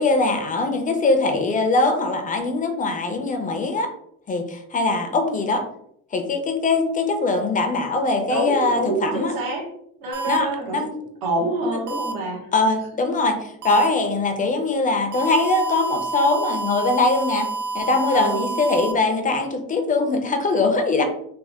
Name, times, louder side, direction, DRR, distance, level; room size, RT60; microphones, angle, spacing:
voice 1, 0.0-3.9 4.3-5.6 6.1-9.3 10.2-10.9 12.5-17.5 17.7-21.0, left 3 dB, 20° left, 5 dB, 0.6 m, -22 dB
voice 2, 8.3-9.7 10.0-12.5 18.1-18.5, right 2 dB, 75° right, -1 dB, 1.4 m, -26 dB
sound 1, 10.1-10.4 11.9-12.1 13.6-13.9 15.1-18.9, right 3 dB, 60° right, 0.7 m, -28 dB
3.5 x 2.3 x 3.5 m, 0.70 s
cardioid pair, 140°, 36 cm